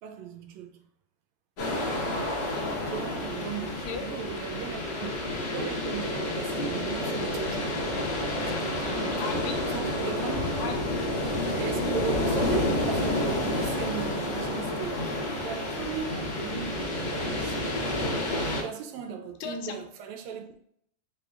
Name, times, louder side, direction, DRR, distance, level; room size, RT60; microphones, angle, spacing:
voice 1, 0.0-0.8 2.8-5.1 5.4-7.8 8.4-9.2 9.7-10.5 11.5-15.0 15.4-18.1 18.5-20.5, right 7 dB, 80° right, 1.7 m, -38 dB
sound 1, 1.6-18.6, left 1 dB, 55° left, 1.2 m, -29 dB
voice 2, 3.6-4.0 9.2-9.6 10.6-11.0 19.4-19.7, left 6 dB, 80° left, 1.6 m, -37 dB
4.9 x 3.4 x 2.4 m
omnidirectional pair, 3.3 m